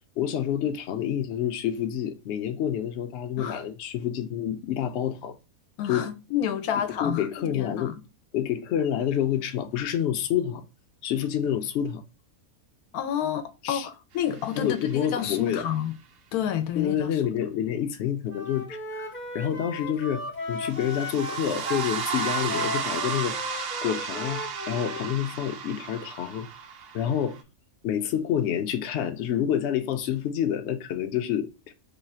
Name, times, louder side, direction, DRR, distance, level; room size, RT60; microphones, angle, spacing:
voice 1, 0.2-5.3 5.9-6.1 7.0-7.9 8.3-10.6 11.0-12.0 13.6-13.9 14.6-15.7 16.8-23.3 23.8-26.5 26.9-27.4 27.8-31.7, left 9 dB, 65° left, 0.7 m, -28 dB
voice 2, 5.8-7.3 7.5-7.9 12.9-15.9 16.3-17.1, left 9 dB, 80° left, 1.1 m, -29 dB
sound 1, 14.3-15.4 20.6-27.4, right 7 dB, 75° right, 0.5 m, -34 dB
Wind instrument woodwind instrument, 18.3-25.1, left 2 dB, 15° left, 0.4 m, -36 dB
3.1 x 2.4 x 4.0 m
omnidirectional pair, 1.6 m